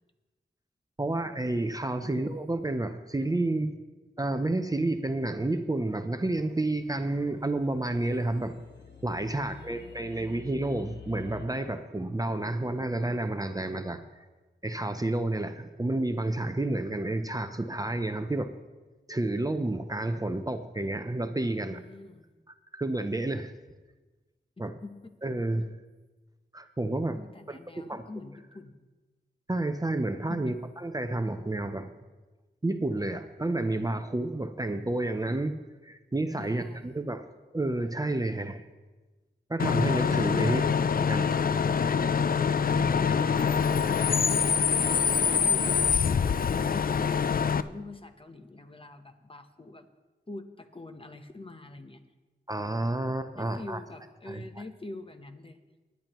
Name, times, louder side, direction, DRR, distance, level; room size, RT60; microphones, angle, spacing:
voice 1, 1.0-3.7 4.2-8.5 9.0-14.0 14.6-18.5 19.1-21.8 22.7-23.6 24.6-24.7 25.2-25.8 26.5-27.2 27.5-28.0 29.5-31.9 32.6-35.5 35.8-37.3 37.5-38.6 39.5-40.6 41.0-41.4 52.5-53.8 54.3-54.4, right 2 dB, 20° right, 8 dB, 0.6 m, -30 dB
sound 1, 6.2-11.5, left 8 dB, 70° left, 1.2 m, -50 dB
voice 2, 9.3-10.1 21.5-22.4 24.8-25.1 27.1-28.9 30.3-30.6 36.4-37.0 40.3-40.7 42.9-44.6 45.2-46.1 46.5-49.9 50.3-52.0 53.4-55.6, left 2 dB, 30° left, 7 dB, 0.9 m, -44 dB
Bus / Idling / Screech, 39.6-47.6, left 6 dB, 50° left, 0.4 m, -25 dB
19.5 x 10.5 x 3.0 m, 1.2 s
wide cardioid pair, 85°, 19 cm